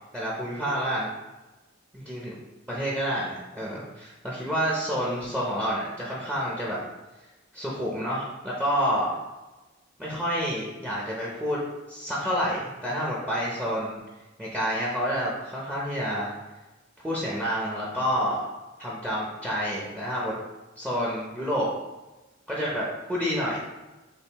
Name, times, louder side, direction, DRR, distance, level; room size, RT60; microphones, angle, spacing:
voice 1, 0.1-1.1 1.9-2.3 2.7-6.8 7.5-9.2 10.0-11.6 11.9-14.0 14.4-16.3 17.0-18.4 18.8-20.3 20.8-21.7 22.5-23.6, equal, 10° right, -6 dB, 0.7 m, -28 dB
6.8 x 2.6 x 3.0 m, 1.1 s
head